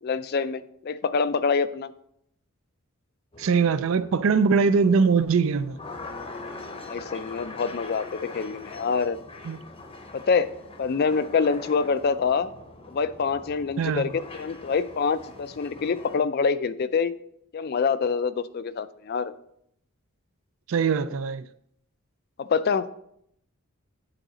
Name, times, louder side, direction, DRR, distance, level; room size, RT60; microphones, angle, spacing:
voice 1, 0.0-1.9 6.9-9.2 10.1-10.5 10.8-12.5 12.9-17.1 17.5-19.3 22.4-22.9, left 5 dB, 45° left, 0.3 m, -26 dB
sound 1, 3.3-16.2, left 3 dB, 25° left, 0.7 m, -42 dB
voice 2, 3.4-5.8 9.5-9.6 13.8-14.1 20.7-21.4, right 5 dB, 65° right, 0.4 m, -22 dB
8.8 x 3.9 x 4.9 m
head